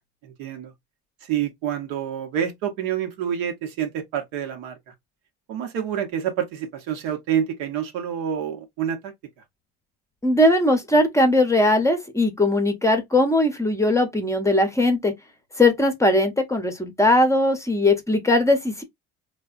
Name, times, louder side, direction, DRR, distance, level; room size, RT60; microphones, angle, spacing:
voice 1, 0.2-0.7 1.3-4.9 5.5-9.1, right 9 dB, 80° right, 0.9 m, -28 dB
voice 2, 10.2-15.1 15.6-18.8, left 1 dB, 10° left, 0.7 m, -19 dB
3.3 x 2.2 x 2.4 m
supercardioid pair, 100°, 33 cm